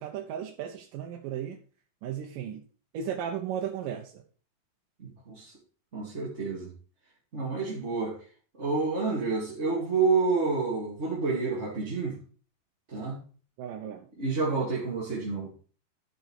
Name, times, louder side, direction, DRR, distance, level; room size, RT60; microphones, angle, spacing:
voice 1, 0.0-1.6 2.0-2.6 2.9-4.2 13.6-14.1, right 9 dB, 70° right, 2 dB, 2.5 m, -35 dB
voice 2, 5.0-5.5 5.9-6.7 7.3-8.2 8.6-12.2 12.9-13.2 14.2-15.5, right 4 dB, 20° right, -5 dB, 2.3 m, -29 dB
12.0 x 6.1 x 4.7 m, 0.39 s
omnidirectional pair, 4.2 m